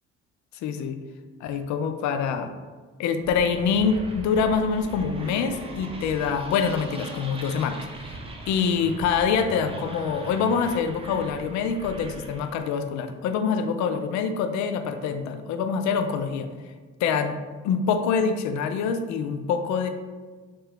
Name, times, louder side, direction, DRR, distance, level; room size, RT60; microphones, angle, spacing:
voice 1, 0.6-1.0 1.4-2.5 3.0-8.2 8.5-16.5 17.0-17.4 17.6-19.9, left 6 dB, 50° left, 8 dB, 0.4 m, -25 dB
sound 1, 3.2-12.6, right 2 dB, 15° right, 0.6 m, -40 dB
3.3 x 2.9 x 3.3 m, 1.4 s
hypercardioid pair, 50°, 38 cm